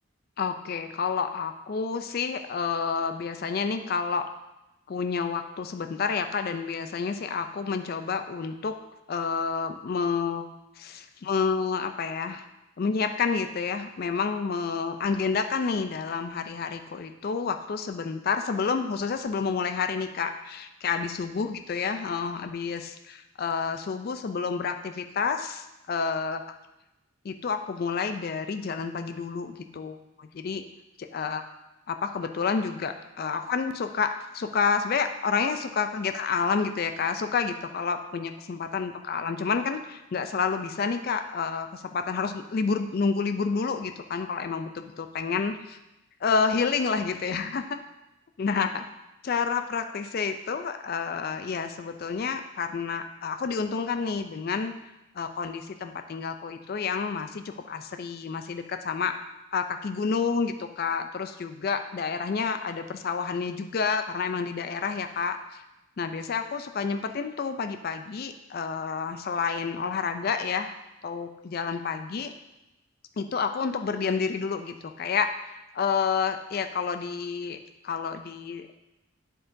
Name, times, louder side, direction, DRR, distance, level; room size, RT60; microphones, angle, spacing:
voice 1, 0.4-4.3 4.9-8.7 9.1-10.5 10.8-12.5 12.8-26.4 27.2-30.6 31.0-31.4 31.9-45.8 46.2-47.8 48.4-48.9 49.2-54.7 55.2-59.1 59.5-65.6 66.0-70.8 71.0-72.3 73.2-77.6 77.8-78.8, left 5 dB, 45° left, 8 dB, 0.3 m, -29 dB
9.3 x 7.5 x 2.6 m, 0.95 s
head